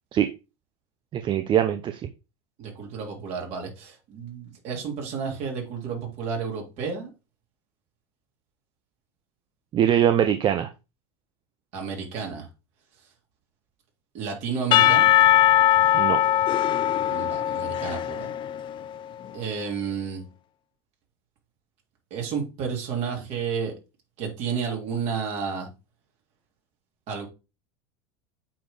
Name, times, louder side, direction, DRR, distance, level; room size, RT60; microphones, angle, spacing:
voice 1, 1.1-2.0 9.7-10.7 15.9-16.2, right 10 dB, 35° right, 0.6 m, -22 dB
voice 2, 2.6-7.1 11.7-12.5 14.1-15.1 17.1-18.3 19.3-20.2 22.1-23.7 24.2-25.7 27.1-27.3, right 6 dB, 50° right, 3.0 m, -31 dB
Percussion / Church bell, 14.7-18.8, left 12 dB, 35° left, 0.5 m, -20 dB
8.5 x 3.9 x 3.7 m
hypercardioid pair, 105°, 15 cm